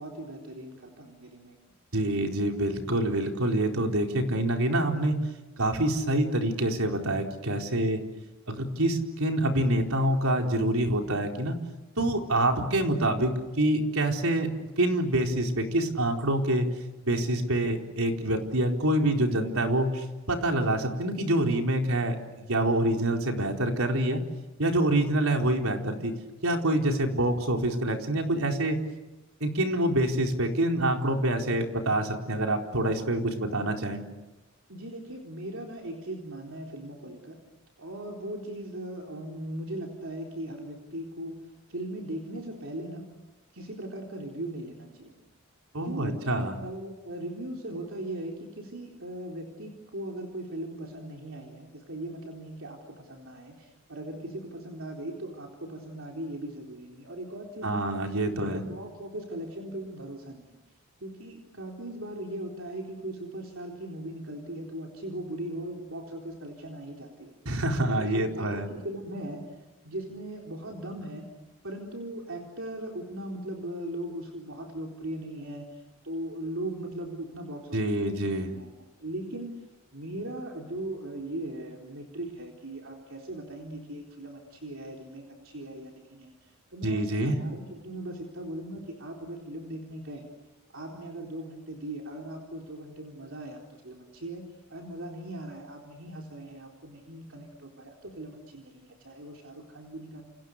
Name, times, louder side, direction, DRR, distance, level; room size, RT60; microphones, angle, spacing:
voice 1, 0.0-1.6 34.7-37.4 37.8-41.4 41.7-43.1 43.5-45.1 45.8-57.8 58.3-60.6 61.0-67.3 67.8-69.4 69.8-71.3 71.6-78.7 79.0-79.6 79.9-90.3 90.7-94.5 94.7-100.2, right 1 dB, 65° right, 0 dB, 4.1 m, -39 dB
voice 2, 1.9-5.2 5.6-8.0 8.5-11.6 12.0-14.5 14.8-16.7 17.0-24.2 24.6-26.1 26.4-28.8 29.4-34.0 45.7-46.6 57.6-58.6 67.5-68.6 77.7-78.5 86.8-87.4, right 1 dB, 80° right, 2 dB, 4.3 m, -26 dB
29.5 x 29.0 x 6.7 m, 1.1 s
head